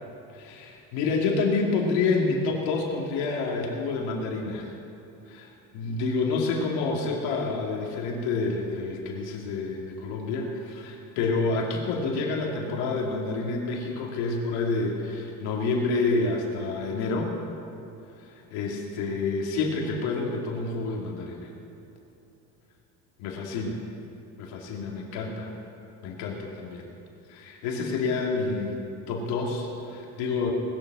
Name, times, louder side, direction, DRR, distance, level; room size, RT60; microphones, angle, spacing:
voice 1, 0.3-4.7 5.3-17.4 18.2-21.5 23.2-23.8 24.4-25.5 26.0-26.8 27.3-28.8 29.1-30.5, left 3 dB, 80° left, 0 dB, 2.8 m, -28 dB
20.0 x 7.4 x 6.3 m, 2.9 s
supercardioid pair, 105°, 39 cm